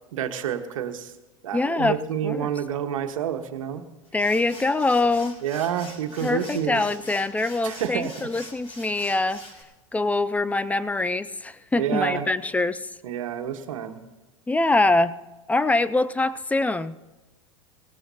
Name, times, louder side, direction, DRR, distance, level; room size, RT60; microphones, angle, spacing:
voice 1, 0.1-1.1 1.4-3.8 5.4-6.8 7.6-8.1 11.7-12.3 13.0-14.0, right 9 dB, 75° right, 5 dB, 1.4 m, -28 dB
voice 2, 1.5-2.0 2.2-2.5 4.1-5.4 6.2-9.4 9.9-12.9 14.5-15.2 15.5-16.9, left 2 dB, 10° left, 15 dB, 0.4 m, -24 dB
sound 1, 4.1-9.6, left 1 dB, 35° left, 5.3 m, -44 dB
19.0 x 16.5 x 2.8 m, 1.1 s
hypercardioid pair, 100°, 17 cm